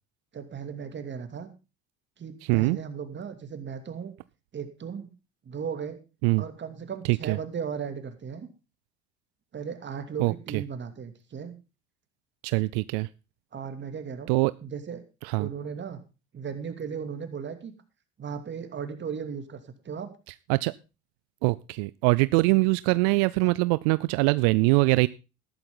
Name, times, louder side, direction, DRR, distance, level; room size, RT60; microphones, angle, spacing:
voice 1, 0.3-1.5 2.2-4.1 4.5-5.1 5.4-6.0 6.4-8.5 9.5-11.5 13.5-14.3 14.6-15.0 15.4-16.0 16.3-17.7 18.2-20.1 23.4-23.5, right 7 dB, 35° right, 8 dB, 2.7 m, -36 dB
voice 2, 10.2-10.6 12.4-13.1 14.3-14.5 15.2-15.5 20.5-20.7 21.4-25.1, right 25 dB, 80° right, 18 dB, 0.5 m, -23 dB
13.0 x 12.0 x 3.8 m, 0.30 s
supercardioid pair, 95°, 31 cm